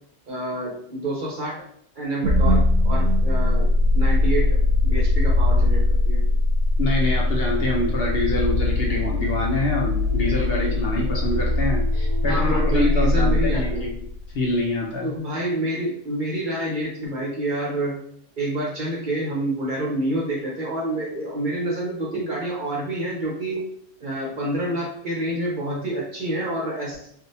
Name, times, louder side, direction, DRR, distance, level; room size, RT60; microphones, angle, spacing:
voice 1, 0.3-1.6 2.0-6.2 12.3-13.9 15.0-18.0 18.4-23.7 24.0-27.1, right 1 dB, 45° right, -4 dB, 0.9 m, -28 dB
sound 1, 2.2-14.3, left 2 dB, 85° right, 1.0 m, -21 dB
voice 2, 6.8-13.9 14.3-15.1, left 2 dB, 60° left, -2 dB, 0.8 m, -25 dB
sound 2, 8.9-13.9, right 2 dB, 30° left, 0.4 m, -36 dB
3.4 x 2.5 x 2.7 m, 0.68 s
omnidirectional pair, 1.3 m